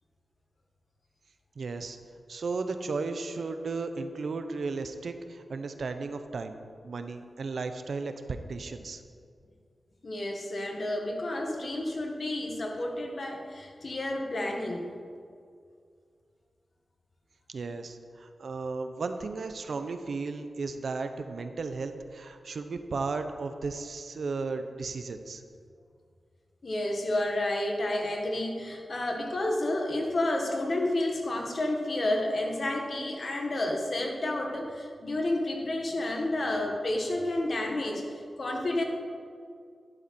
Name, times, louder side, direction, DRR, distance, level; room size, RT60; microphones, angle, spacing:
voice 1, 1.6-2.0 2.3-6.6 6.8-9.0 17.5-25.4, right 4 dB, 65° right, 8 dB, 0.8 m, -35 dB
voice 2, 10.0-14.9 26.6-38.0 38.4-38.8, left 1 dB, 45° left, 1 dB, 1.8 m, -30 dB
12.5 x 11.5 x 4.3 m, 2.2 s
wide cardioid pair, 110°, 0 cm